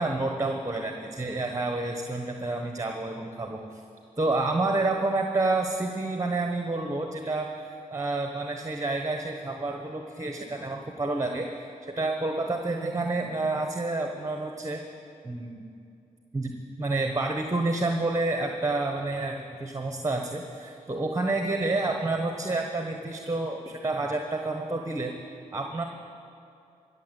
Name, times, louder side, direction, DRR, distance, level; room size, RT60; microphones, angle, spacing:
voice 1, 0.0-3.8 4.2-14.8 15.2-15.6 16.3-16.5 16.8-25.2 25.5-25.8, right 2 dB, 20° right, 3 dB, 1.2 m, -29 dB
14.5 x 7.1 x 8.3 m, 2.6 s
supercardioid pair, 45°, 16 cm